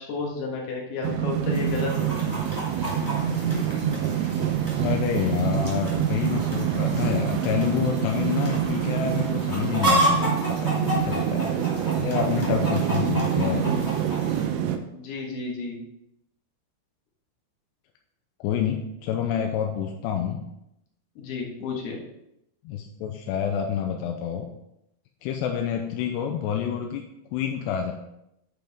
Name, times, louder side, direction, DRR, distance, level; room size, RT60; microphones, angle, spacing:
voice 1, 0.0-2.3 14.9-15.8 21.2-22.0, left 3 dB, 60° left, -2 dB, 3.3 m, -32 dB
sound 1, 1.0-14.8, right 9 dB, 85° right, 3.1 m, -26 dB
Chicken rooster, 1.5-14.5, right 1 dB, 20° left, 0.5 m, -31 dB
voice 2, 4.8-11.5 12.0-13.9 18.4-20.4 22.6-24.5 25.2-27.0 27.3-27.9, left 9 dB, 80° left, 2 dB, 2.6 m, -28 dB
9.2 x 7.5 x 3.6 m, 0.83 s
omnidirectional pair, 5.4 m